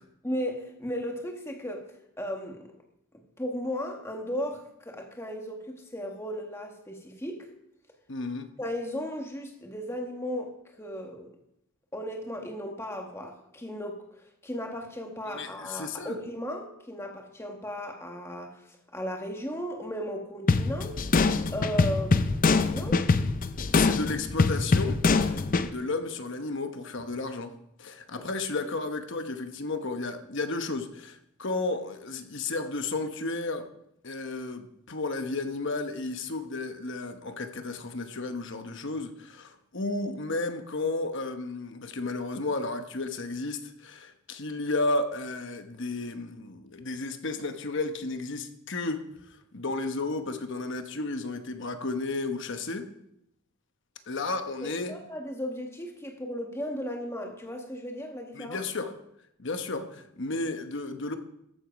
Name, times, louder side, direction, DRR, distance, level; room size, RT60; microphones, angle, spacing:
voice 1, 0.2-2.7 3.4-7.5 8.6-11.3 11.9-21.0 21.5-22.4 22.7-23.0 54.6-58.6, equal, 10° left, 1.5 m, -36 dB
voice 2, 8.1-8.5 15.3-16.1 23.7-27.5 27.8-33.7 34.0-52.9 54.1-54.9 58.3-58.9 59.4-61.2, left 3 dB, 55° left, 1.1 m, -33 dB
sound 1, 20.5-25.7, left 3 dB, 40° left, 0.5 m, -24 dB
14.0 x 7.9 x 5.2 m
head